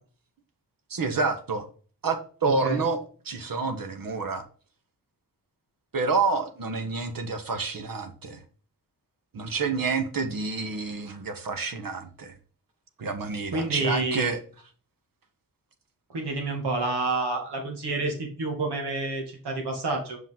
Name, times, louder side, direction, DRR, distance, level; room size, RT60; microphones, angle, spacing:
voice 1, 0.9-1.6 2.0-4.4 5.9-8.4 9.3-12.3 13.0-14.4, right 4 dB, 60° right, 7 dB, 1.1 m, -28 dB
voice 2, 2.4-2.8 13.5-14.3 16.1-20.2, right 2 dB, 85° right, 2 dB, 2.1 m, -29 dB
5.9 x 5.4 x 3.6 m, 0.41 s
cardioid pair, 60°, 39 cm